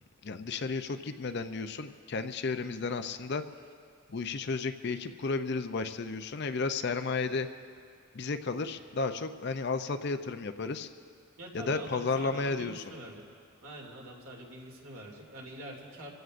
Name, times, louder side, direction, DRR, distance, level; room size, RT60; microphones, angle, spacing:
voice 1, 0.2-3.4 4.1-7.5 8.1-10.9 11.5-13.0, left 4 dB, 50° left, 9 dB, 0.5 m, -33 dB
voice 2, 11.4-13.2 13.6-16.1, right 1 dB, 75° right, -1 dB, 2.6 m, -45 dB
26.5 x 15.5 x 2.5 m, 2.3 s
head